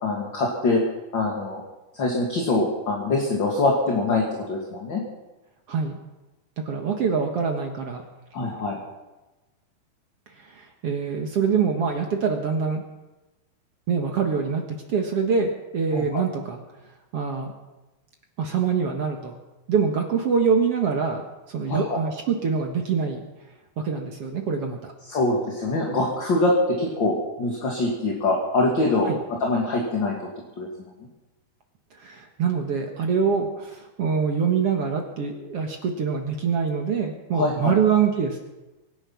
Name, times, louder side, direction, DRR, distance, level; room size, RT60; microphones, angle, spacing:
voice 1, 0.0-0.8 1.1-1.6 1.9-4.2 4.5-5.0 8.3-8.8 15.9-16.2 21.7-22.0 25.0-29.1 29.4-30.2 30.6-30.9 37.3-37.8, left 2 dB, 35° left, -2 dB, 2.4 m, -24 dB
voice 2, 5.7-6.0 6.7-8.0 10.5-12.8 13.9-14.6 14.9-16.6 17.1-17.5 18.4-19.3 19.7-21.2 21.5-23.2 23.8-24.9 29.0-29.2 32.0-38.4, right 6 dB, 55° right, 3 dB, 1.8 m, -24 dB
24.5 x 9.9 x 5.8 m, 1.1 s
omnidirectional pair, 4.3 m